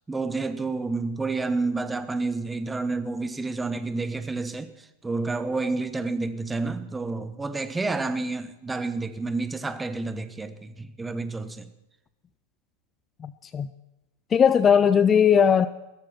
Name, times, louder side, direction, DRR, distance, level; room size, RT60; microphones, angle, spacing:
voice 1, 0.1-11.7, right 3 dB, 10° right, 1.0 m, -29 dB
voice 2, 13.2-13.7 14.3-15.7, left 7 dB, 20° left, 0.4 m, -18 dB
16.0 x 13.5 x 6.0 m
figure-of-eight pair, 90°, 0 cm